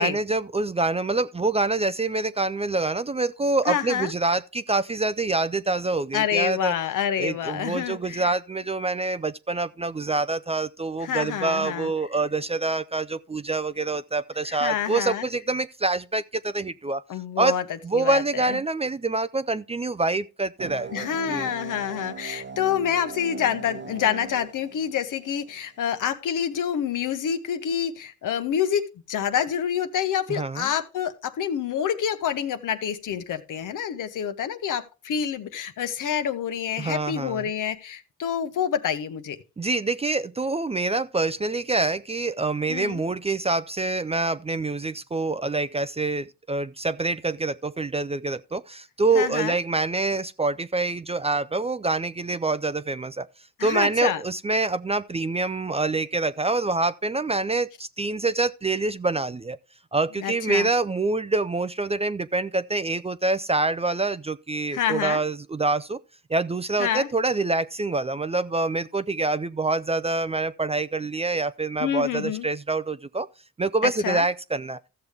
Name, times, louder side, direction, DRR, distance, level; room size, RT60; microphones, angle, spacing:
voice 1, 0.0-6.7 7.2-17.0 17.4-17.5 17.8-21.5 30.3-30.7 36.8-37.4 39.6-53.3 53.6-59.6 59.9-66.0 66.3-73.3 73.6-74.8, right 3 dB, 20° right, 0.4 m, -26 dB
voice 2, 3.7-4.1 6.1-8.3 11.0-11.9 14.5-15.3 17.1-17.6 17.9-18.6 20.9-39.4 42.7-43.0 49.1-49.6 53.6-54.2 60.2-60.7 64.7-65.2 66.8-67.1 71.8-72.5 73.8-74.2, left 9 dB, 70° left, 1.0 m, -27 dB
sound 1, 20.6-25.6, right 5 dB, 35° right, 1.1 m, -39 dB
14.0 x 6.6 x 3.5 m
supercardioid pair, 55°, 33 cm